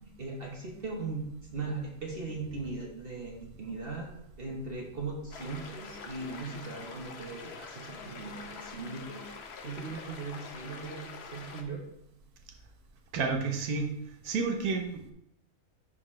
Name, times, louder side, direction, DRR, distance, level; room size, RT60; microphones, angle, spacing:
voice 1, 0.0-9.3 9.6-11.9, right 3 dB, 40° right, -1 dB, 1.2 m, -39 dB
sound 1, 5.3-11.6, left 5 dB, 50° left, 0.9 m, -45 dB
voice 2, 13.1-13.9 14.2-15.1, right 4 dB, 85° right, 3 dB, 1.4 m, -30 dB
11.0 x 4.0 x 3.2 m, 0.76 s
omnidirectional pair, 1.6 m